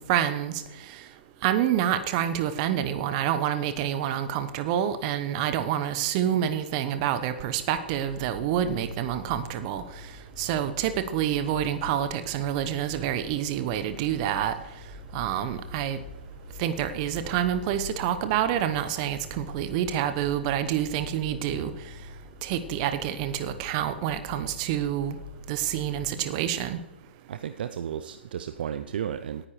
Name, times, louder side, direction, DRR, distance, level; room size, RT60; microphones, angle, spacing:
voice 1, 0.1-0.6 1.4-9.8 10.4-14.6 15.1-16.0 16.6-21.7 22.4-25.2 25.5-26.8, right 10 dB, 35° right, 10 dB, 1.0 m, -27 dB
sound 1, 7.8-26.1, left 2 dB, 10° right, 3.9 m, -44 dB
voice 2, 27.3-29.5, right 9 dB, 55° right, 11 dB, 0.5 m, -33 dB
18.0 x 10.0 x 3.2 m, 1.0 s
figure-of-eight pair, 120°, 6 cm